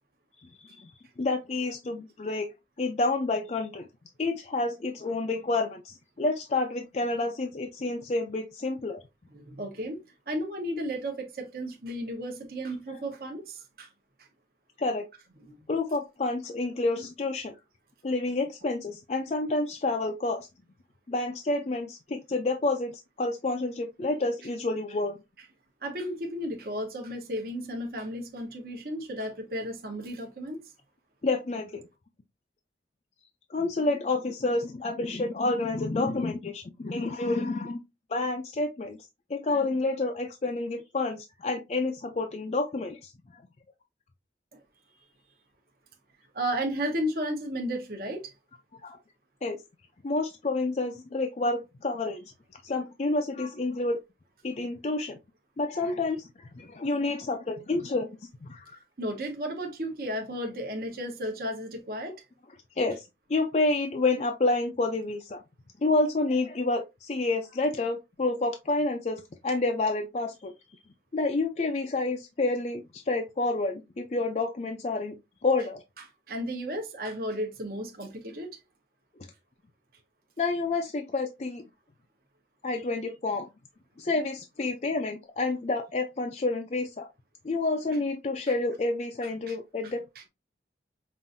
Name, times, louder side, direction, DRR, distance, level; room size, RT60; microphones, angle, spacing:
voice 1, 0.4-0.9 1.2-2.5 2.8-3.9 4.2-9.0 12.9-13.0 14.8-15.1 15.7-17.6 18.0-20.5 21.1-25.2 31.2-31.8 33.5-37.8 38.1-39.0 39.3-43.4 48.8-49.0 49.4-49.6 50.0-52.2 52.6-54.0 54.4-55.2 55.6-58.1 58.4-58.8 62.8-65.4 65.8-70.5 71.1-75.2 75.4-75.8 80.4-81.6 82.6-83.5 84.0-87.1 87.4-90.1, left 2 dB, 40° left, 0.4 m, -29 dB
voice 2, 9.3-13.9 15.5-15.6 25.8-30.7 46.3-48.3 59.0-62.2 76.3-78.6 89.5-89.6 90.2-90.3, equal, 55° right, 0.9 m, -34 dB
5.4 x 2.5 x 2.5 m
head